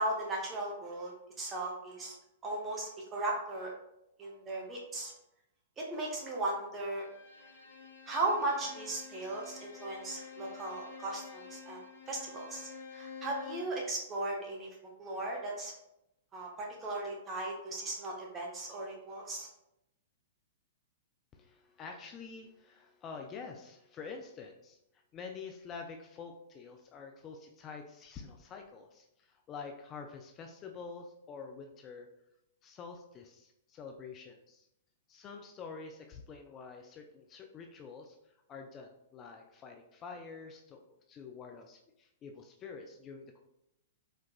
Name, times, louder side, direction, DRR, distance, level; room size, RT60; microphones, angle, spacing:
voice 1, 0.0-2.2 2.4-3.7 4.2-5.1 5.8-7.1 8.1-14.7 15.0-15.7 16.3-19.5, right 2 dB, 20° right, -2 dB, 0.6 m, -37 dB
Bowed string instrument, 6.9-13.8, left 6 dB, 65° left, 0.6 m, -49 dB
voice 2, 21.3-32.1 32.6-34.7 35.1-38.2 38.5-43.4, left 5 dB, 25° left, 3 dB, 0.3 m, -47 dB
4.4 x 2.3 x 2.2 m, 0.84 s
figure-of-eight pair, 105°, 0 cm